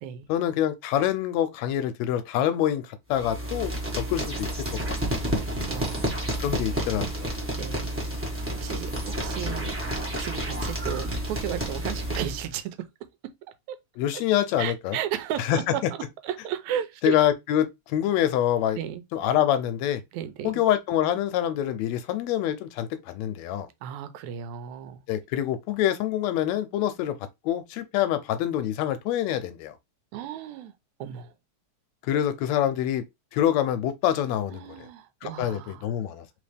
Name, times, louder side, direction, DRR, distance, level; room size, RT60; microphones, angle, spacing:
voice 1, 0.3-4.5 4.9-5.2 6.4-7.4 14.0-15.0 15.4-15.6 17.0-18.8 19.1-20.0 20.4-23.7 25.1-27.2 27.4-29.7 32.0-33.0 33.3-34.9 35.2-36.3, left 11 dB, 80° left, 1.8 m, -26 dB
sound 1, 3.1-12.5, right 1 dB, 20° right, 0.3 m, -30 dB
voice 2, 5.4-6.3 7.6-9.8 10.2-12.9 13.2-13.3 13.7-13.8 14.1-14.2 14.6-15.8 16.2-17.2 18.8-19.0 20.1-20.5 23.8-25.0 30.1-30.8 31.0-31.3 34.5-35.9, right 10 dB, 90° right, 2.0 m, -34 dB
4.1 x 3.5 x 3.3 m
omnidirectional pair, 3.3 m